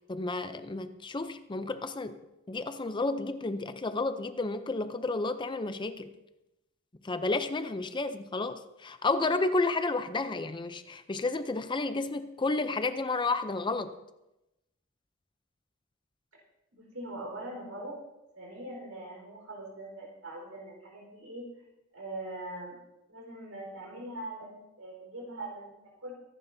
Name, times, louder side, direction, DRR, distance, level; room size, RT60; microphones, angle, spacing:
voice 1, 0.1-2.2 2.5-6.1 7.0-13.9, left 3 dB, 20° left, 10 dB, 0.5 m, -31 dB
voice 2, 16.7-18.0 18.3-21.5 21.9-22.8 23.1-26.1, right 1 dB, 75° right, -1 dB, 4.5 m, -42 dB
23.5 x 11.0 x 2.7 m, 0.95 s
head